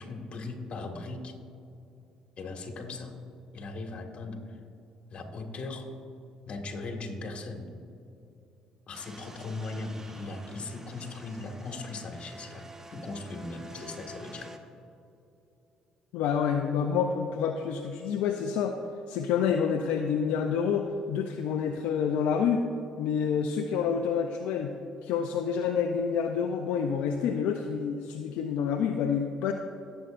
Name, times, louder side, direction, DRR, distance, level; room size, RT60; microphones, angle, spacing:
voice 1, 0.0-1.4 2.4-3.1 3.5-4.4 5.1-5.9 6.5-7.7 8.9-12.6 12.9-14.5, left 3 dB, 55° left, 3 dB, 1.8 m, -38 dB
sound 1, 8.9-14.6, right 1 dB, 20° right, 1.1 m, -48 dB
voice 2, 16.1-18.7 19.1-22.7 23.0-24.7 25.0-29.5, left 7 dB, 75° left, 4 dB, 0.5 m, -28 dB
17.5 x 7.9 x 2.6 m, 2.8 s
supercardioid pair, 65°, 2 cm